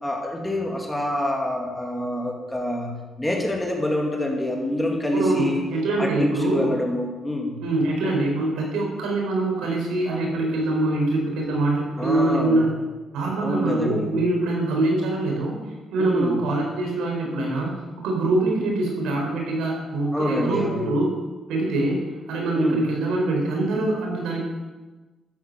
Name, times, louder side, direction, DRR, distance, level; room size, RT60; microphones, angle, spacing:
voice 1, 0.0-5.6 6.0-7.6 12.0-12.6 13.4-14.1 16.0-16.4 20.1-20.9 22.5-22.8, left 1 dB, 10° left, 0 dB, 2.5 m, -26 dB
voice 2, 5.1-5.5 5.7-6.7 7.6-12.7 13.1-15.6 15.9-17.7 18.0-21.1 21.5-24.4, right 2 dB, 85° right, 0 dB, 4.4 m, -24 dB
13.0 x 8.4 x 7.6 m, 1.2 s
cardioid pair, 90°, 0 cm